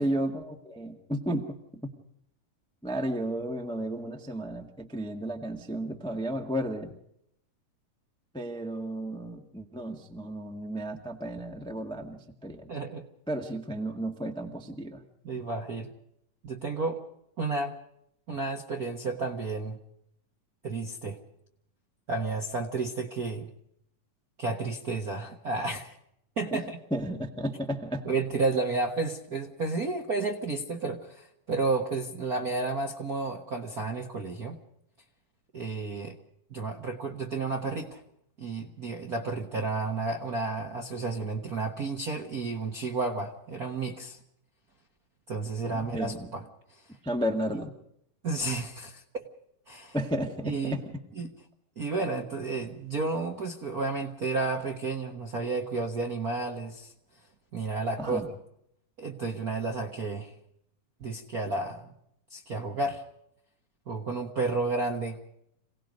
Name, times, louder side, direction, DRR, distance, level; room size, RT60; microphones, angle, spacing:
voice 1, 0.0-1.9 2.8-6.9 8.3-12.7 13.3-15.0 26.5-26.6 26.9-28.0 45.7-46.3 47.0-47.7 49.9-50.8 58.0-58.3, right 1 dB, 5° left, 3 dB, 0.7 m, -33 dB
voice 2, 12.7-13.1 15.2-15.9 16.4-17.0 17.4-17.8 18.3-19.8 20.6-21.2 22.1-23.5 24.4-25.9 26.4-26.8 28.0-34.6 35.5-36.2 36.5-38.0 38.4-44.2 45.3-46.4 46.7-46.8 48.2-49.2 49.7-49.9 50.4-50.8 51.2-51.3 51.8-56.9 57.5-58.2 59.0-60.3 61.0-61.9 62.3-63.0 63.9-65.2, right 3 dB, 50° right, 3 dB, 1.1 m, -31 dB
27.0 x 18.5 x 5.3 m, 0.75 s
omnidirectional pair, 3.6 m